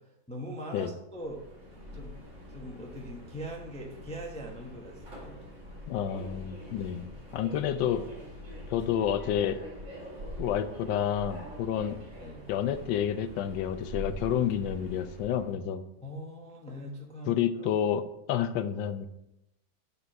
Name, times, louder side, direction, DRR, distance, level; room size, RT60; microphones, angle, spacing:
voice 1, 0.0-1.4 1.9-2.1 2.5-5.4 12.2-12.5 16.0-17.7, right 1 dB, 5° left, -1 dB, 0.6 m, -41 dB
Subway metro underground, 1.1-15.5, left 1 dB, 45° right, 1.5 m, -44 dB
voice 2, 5.9-8.1 8.7-9.6 10.4-12.0 12.5-15.8 17.3-18.0 18.3-19.1, left 9 dB, 90° left, 11 dB, 1.3 m, -29 dB
6.9 x 4.3 x 5.6 m, 0.85 s
omnidirectional pair, 2.0 m